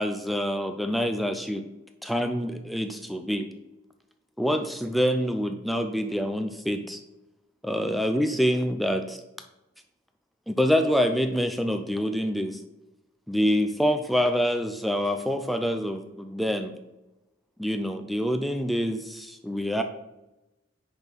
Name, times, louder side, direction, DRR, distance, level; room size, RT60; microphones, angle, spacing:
voice 1, 0.0-1.6 2.0-3.5 4.4-7.0 7.6-9.2 10.5-12.6 13.3-16.7 17.6-19.8, equal, ahead, 6 dB, 0.4 m, -26 dB
5.2 x 4.4 x 6.1 m, 0.97 s
head